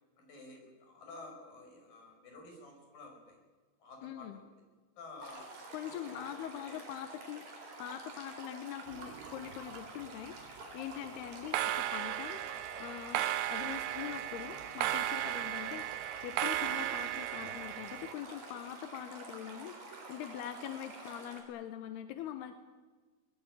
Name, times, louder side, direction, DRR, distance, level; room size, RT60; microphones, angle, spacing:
voice 1, 0.2-3.4 3.8-4.6 5.0-6.9 10.9-11.1, left 3 dB, 45° left, 2 dB, 7.2 m, -52 dB
voice 2, 4.0-4.4 5.7-13.2 13.5-22.5, left 11 dB, 70° left, 9 dB, 2.7 m, -43 dB
Stream, 5.2-21.4, right 2 dB, 45° right, 5.4 m, -49 dB
sound 1, 8.9-9.8 10.0-10.5 11.3-18.1, right 14 dB, 75° right, 2.7 m, -36 dB
22.0 x 20.5 x 9.0 m, 1.4 s
omnidirectional pair, 5.6 m